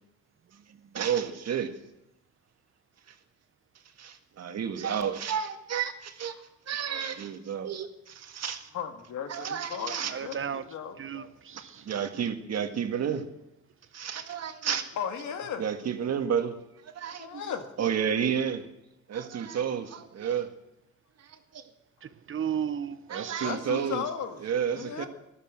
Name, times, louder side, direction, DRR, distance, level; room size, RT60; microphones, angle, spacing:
voice 1, 0.9-1.7 4.0-6.4 6.7-8.7 9.3-10.1 11.5-13.2 13.9-14.9 15.6-16.5 16.8-17.4 17.8-18.7 19.1-20.5 21.2-21.6 23.1-24.0 24.4-25.1, right 8 dB, 60° right, 1.7 m, -31 dB
voice 2, 8.7-11.3 15.0-15.7 17.1-17.7 23.4-24.5 24.7-25.1, left 8 dB, 75° left, 2.0 m, -36 dB
voice 3, 10.1-10.6 11.0-11.8 22.0-23.5, right 8 dB, 45° right, 0.9 m, -34 dB
13.5 x 12.0 x 7.5 m
cardioid pair, 90°, 30 cm